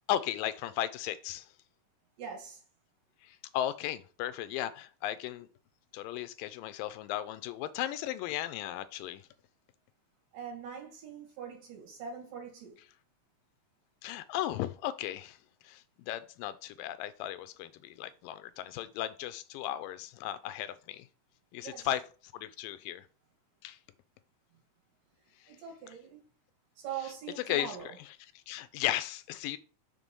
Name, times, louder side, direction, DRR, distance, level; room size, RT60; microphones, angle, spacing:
voice 1, 0.1-1.5 3.2-5.5 5.9-9.3 14.0-15.4 15.6-21.1 21.5-22.0 22.3-23.1 23.6-23.8 27.5-27.8 28.5-29.6, left 12 dB, 90° left, 2.3 m, -35 dB
voice 2, 2.2-2.6 10.3-12.8 21.6-21.9 25.5-26.2 26.8-28.0, right 7 dB, 75° right, 3.7 m, -42 dB
7.6 x 3.7 x 5.3 m
omnidirectional pair, 3.9 m